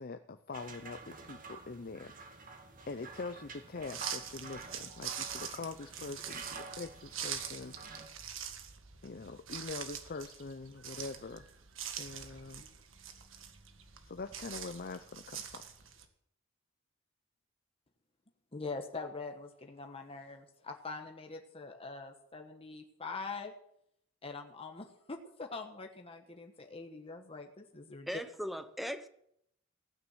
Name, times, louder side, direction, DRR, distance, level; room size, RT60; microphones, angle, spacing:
voice 1, 0.0-2.1 2.9-7.7 8.0-8.1 9.0-11.5 12.0-12.7 14.0-15.6, left 3 dB, 50° left, 0.6 m, -44 dB
sound 1, 0.5-8.1, right 3 dB, 45° right, 1.9 m, -49 dB
sound 2, 3.8-16.0, right 8 dB, 80° right, 1.7 m, -44 dB
voice 2, 18.5-23.5 24.2-28.1, left 4 dB, 30° left, 1.2 m, -44 dB
voice 3, 28.1-29.1, equal, ahead, 0.9 m, -38 dB
16.0 x 9.5 x 7.9 m
head